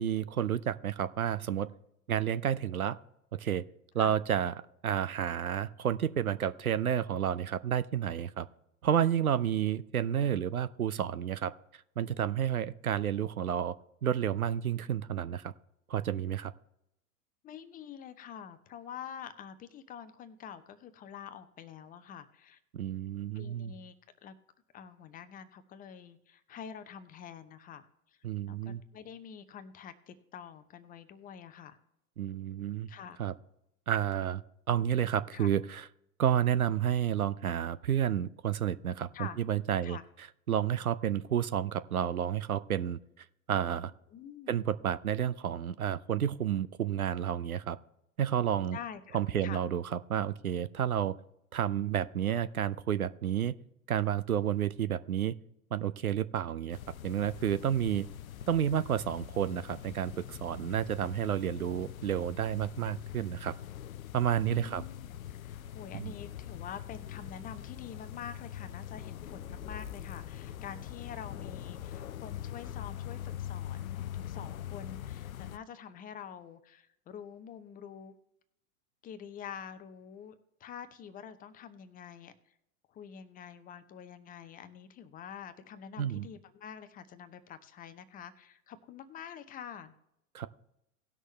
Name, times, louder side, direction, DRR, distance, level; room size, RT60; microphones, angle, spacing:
voice 1, 0.0-1.7 2.1-3.0 3.4-3.6 3.9-4.5 4.8-8.5 8.8-11.5 12.0-13.7 14.0-15.5 15.9-16.5 22.7-23.8 28.2-28.8 32.2-32.9 33.2-33.3 33.9-34.4 34.7-35.8 36.2-40.0 40.5-43.0 43.5-43.9 44.5-47.8 48.2-48.8 49.1-51.1 51.5-53.6 53.9-55.3 55.7-56.8 57.0-58.1 58.5-63.5 64.1-64.8 65.9-66.1 86.0-86.3 90.3-90.5, right 9 dB, 75° right, 15 dB, 0.6 m, -30 dB
voice 2, 12.9-13.3 17.4-22.6 23.3-23.9 24.2-24.3 24.7-28.2 28.5-31.8 32.9-33.2 34.7-34.9 35.3-35.5 39.1-39.4 39.8-40.1 44.1-44.6 48.7-49.6 64.5-78.1 79.0-80.3 80.6-82.3 82.9-89.9, left 8 dB, 20° left, 11 dB, 0.7 m, -47 dB
sound 1, 56.7-75.6, left 11 dB, 70° left, 0.5 m, -43 dB
18.5 x 6.3 x 3.1 m, 0.80 s
figure-of-eight pair, 90°, 44 cm